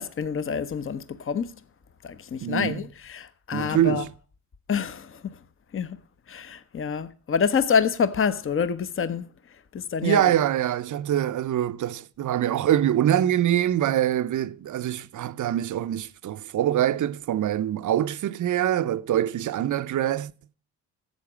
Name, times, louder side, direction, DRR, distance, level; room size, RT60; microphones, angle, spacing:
voice 1, 0.0-1.5 2.0-4.0 4.7-5.4 5.7-6.0 6.3-9.2 9.7-10.3, left 6 dB, 30° left, 0.9 m, -27 dB
voice 2, 2.4-2.8 3.5-4.1 10.0-20.3, right 11 dB, 50° right, 0.7 m, -24 dB
11.5 x 7.7 x 6.1 m
cardioid pair, 85°, 39 cm